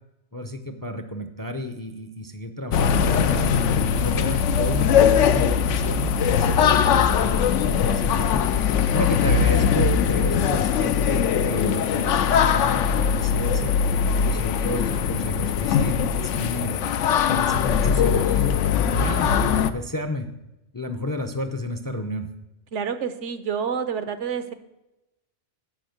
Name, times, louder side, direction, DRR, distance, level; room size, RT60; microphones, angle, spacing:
voice 1, 0.3-13.8 14.3-16.8 17.3-20.3 20.7-22.3, left 1 dB, 25° left, 7 dB, 0.4 m, -32 dB
sound 1, 2.7-19.7, left 7 dB, 85° left, 0.9 m, -21 dB
voice 2, 22.7-24.5, right 7 dB, 75° right, 10 dB, 1.1 m, -28 dB
10.5 x 4.4 x 7.8 m, 0.95 s
omnidirectional pair, 1.2 m